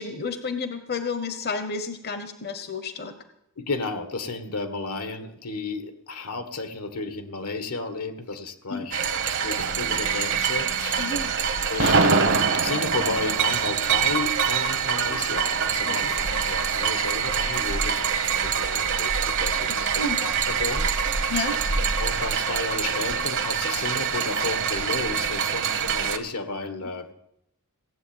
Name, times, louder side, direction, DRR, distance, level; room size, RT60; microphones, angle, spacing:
voice 1, 0.0-3.1 8.7-8.9 11.0-11.3 15.9-16.1 19.8-20.2 21.3-21.6, left 4 dB, 45° left, 9 dB, 0.9 m, -31 dB
voice 2, 3.6-11.1 11.7-21.3 22.0-27.1, left 3 dB, 80° left, 9 dB, 1.6 m, -33 dB
sound 1, 8.9-26.2, right 6 dB, 60° right, 1.2 m, -25 dB
17.5 x 7.7 x 8.8 m, 0.79 s
head